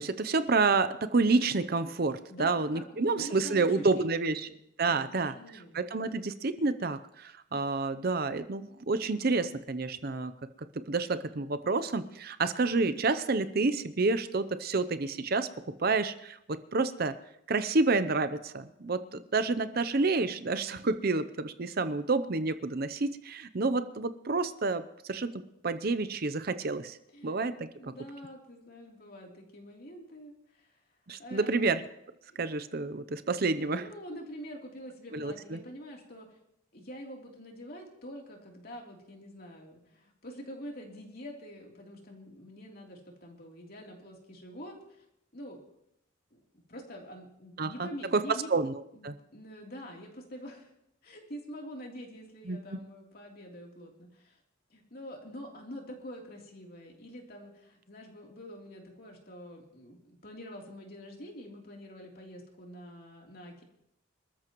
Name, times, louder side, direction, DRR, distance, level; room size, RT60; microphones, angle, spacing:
voice 1, 0.0-4.5 4.8-10.3 10.9-15.5 15.8-17.1 17.5-25.3 25.6-27.0 27.2-27.9 31.1-31.8 32.4-33.8 35.1-35.6 47.6-48.7 49.0-49.2 52.5-52.6, right 3 dB, 50° right, 12 dB, 0.6 m, -29 dB
voice 2, 2.3-5.9 27.1-27.4 27.8-30.7 31.2-31.5 32.3-32.4 33.7-36.4 36.7-45.1 45.3-45.6 46.3-46.4 46.7-48.5 48.9-50.7 51.0-54.4 54.7-63.6, equal, 45° left, -1 dB, 3.3 m, -46 dB
26.5 x 13.5 x 3.1 m, 0.79 s
head